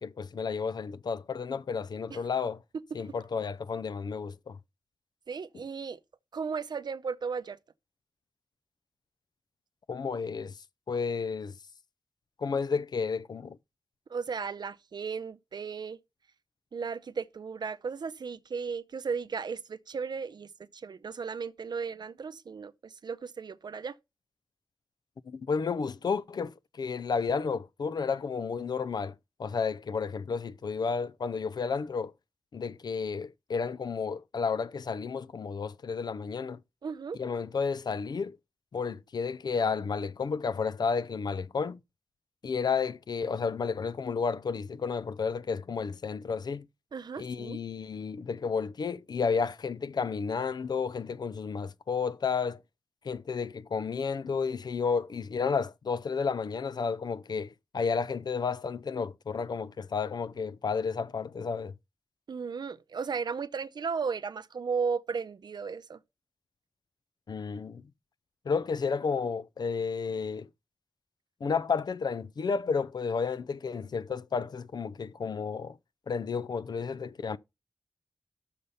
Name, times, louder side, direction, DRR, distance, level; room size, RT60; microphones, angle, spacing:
voice 1, 0.0-2.6 2.9-4.6 9.9-10.5 10.9-11.5 12.4-13.6 25.3-29.1 29.4-32.1 32.5-36.6 37.2-38.4 38.7-41.8 42.4-46.7 47.2-52.6 53.0-61.7 67.3-67.8 68.5-70.5 71.4-75.8 76.1-77.4, left 5 dB, 70° left, 0.4 m, -32 dB
voice 2, 5.3-6.0 6.3-7.6 14.1-16.0 16.7-24.0 36.8-37.2 46.9-47.6 62.3-66.0, right 5 dB, 80° right, 0.6 m, -35 dB
6.7 x 5.5 x 6.6 m
wide cardioid pair, 85°, 7 cm